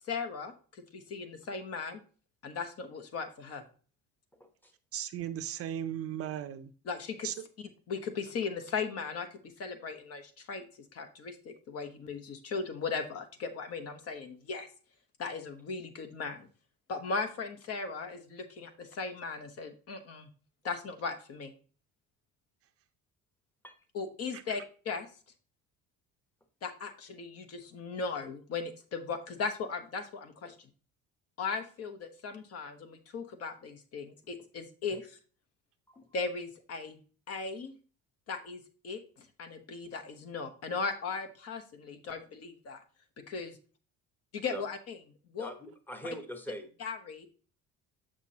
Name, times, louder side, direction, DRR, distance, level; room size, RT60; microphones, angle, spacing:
voice 1, 0.1-2.0 2.4-3.6 6.8-10.6 10.9-14.7 15.2-16.5 16.9-20.3 20.6-21.5 23.9-25.1 26.6-30.5 31.4-35.2 36.1-37.0 37.3-37.7 38.3-39.0 39.4-42.8 43.3-43.5 44.4-45.0 45.3-45.5 46.0-46.1 46.8-47.3, left 4 dB, 50° left, 9 dB, 1.0 m, -37 dB
voice 2, 4.4-4.7 23.6-23.8 30.4-30.5 34.2-34.3 34.9-35.0 35.9-36.1 44.4-44.6 45.4-46.7, equal, 5° left, 6 dB, 0.9 m, -43 dB
voice 3, 4.9-6.7 7.2-7.3, right 10 dB, 50° right, 10 dB, 0.5 m, -36 dB
6.3 x 5.9 x 2.8 m, 0.39 s
cardioid pair, 130°, 31 cm